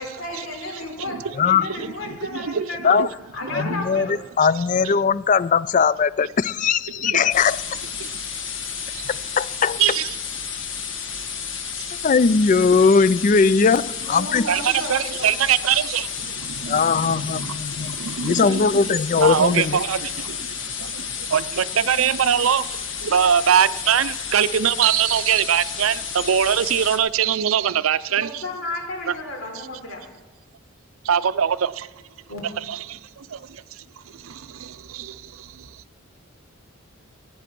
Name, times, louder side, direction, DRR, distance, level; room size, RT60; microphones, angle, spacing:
voice 1, 0.0-3.0 3.3-4.2 14.1-15.3 28.1-30.0 32.3-32.4, left 2 dB, 80° left, 3.7 m, -33 dB
voice 2, 1.6-3.1 3.4-3.8 7.0-7.2 8.9-9.1 9.8-10.2 14.5-28.4 29.1-29.2 31.0-31.9 32.7-35.7, right 8 dB, 85° right, 0.5 m, -23 dB
voice 3, 3.5-7.6 9.4-9.8 12.0-14.4 16.7-19.8, left 5 dB, 40° left, 0.3 m, -19 dB
sound 1, 7.3-27.0, left 6 dB, 65° left, 1.5 m, -31 dB
18.5 x 9.3 x 6.0 m
head